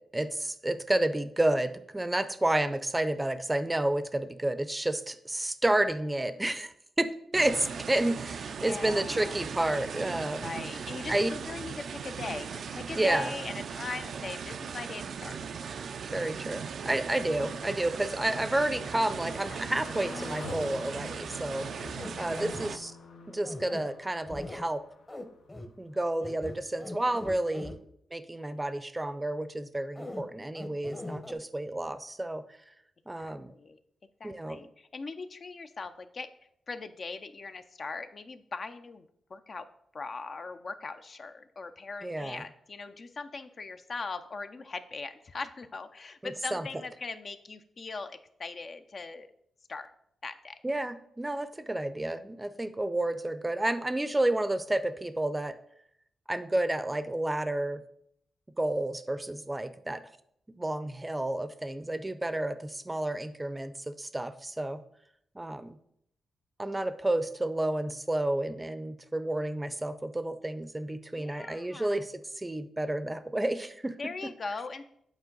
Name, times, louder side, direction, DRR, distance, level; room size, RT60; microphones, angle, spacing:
voice 1, 0.0-10.5 11.1-11.3 13.0-13.3 16.1-22.9 23.3-24.8 25.8-27.7 28.1-32.4 33.1-33.5 34.2-34.6 42.0-42.4 46.2-46.6 50.6-55.6 56.3-57.8 58.6-60.0 60.5-64.8 65.4-65.8 66.6-73.9, right 1 dB, 15° right, 12 dB, 0.5 m, -30 dB
sound 1, 7.3-22.8, right 6 dB, 70° right, 0.4 m, -38 dB
voice 2, 8.5-9.4 10.4-15.4 22.0-22.8 33.2-33.8 34.2-36.3 36.7-39.0 39.3-39.7 39.9-49.3 49.7-49.9 50.2-50.6 71.2-72.0 74.0-74.8, left 4 dB, 50° left, 9 dB, 0.5 m, -40 dB
sound 2, 12.4-26.5 26.9-27.0 27.3-27.4, left 4 dB, 85° left, 0.8 m, -49 dB
sound 3, 21.8-22.6 23.5-23.8 24.3-24.6 25.1-25.2 25.5-25.7 26.2-27.8 30.0-30.2 30.6-31.3, left 1 dB, 20° left, 0.8 m, -40 dB
8.2 x 4.4 x 3.9 m, 0.71 s
cardioid pair, 70°, 0 cm